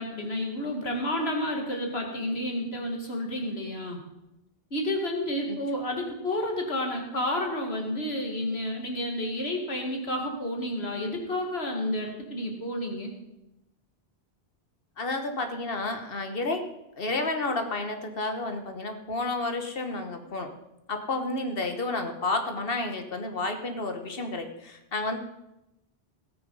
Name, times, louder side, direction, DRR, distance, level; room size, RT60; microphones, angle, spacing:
voice 1, 0.0-4.0 4.7-13.1, left 1 dB, 80° left, 2 dB, 2.2 m, -30 dB
voice 2, 15.0-16.6 17.0-20.5 20.9-25.2, left 2 dB, 65° left, 6 dB, 1.6 m, -31 dB
18.0 x 6.6 x 5.5 m, 0.91 s
omnidirectional pair, 1.0 m